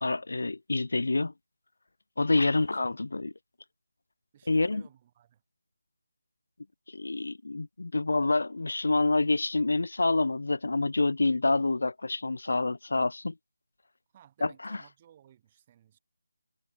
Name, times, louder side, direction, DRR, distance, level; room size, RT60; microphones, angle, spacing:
voice 1, 0.0-1.3 2.2-3.3 4.5-4.8 6.9-13.3 14.4-14.8, left 2 dB, 75° left, 0.4 m, -27 dB
voice 2, 2.5-3.0 4.3-5.4 14.1-16.0, right 10 dB, 20° right, 6.8 m, -57 dB
figure-of-eight pair, 175°, 0 cm